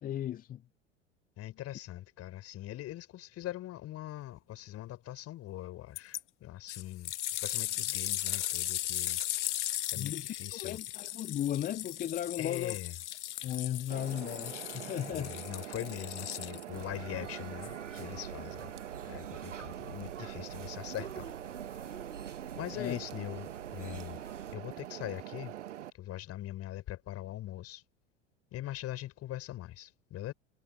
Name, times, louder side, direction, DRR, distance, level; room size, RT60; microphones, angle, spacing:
voice 1, 0.0-0.6 10.0-12.8 13.4-15.3 22.7-23.0, left 11 dB, 25° left, 0.6 m, -36 dB
voice 2, 1.4-7.1 7.4-9.2 9.9-10.8 12.4-13.0 15.1-18.7 19.0-21.3 22.5-24.2 24.5-25.5 25.9-27.8 28.5-30.3, left 14 dB, 40° left, 6.4 m, -42 dB
sound 1, 6.0-6.2 6.7-16.8 17.6-17.7, left 13 dB, 70° left, 2.1 m, -37 dB
sound 2, 13.9-25.9, right 12 dB, 70° right, 1.9 m, -44 dB
sound 3, 16.7-24.6, right 6 dB, 90° right, 1.2 m, -46 dB
figure-of-eight pair, 85°, 36 cm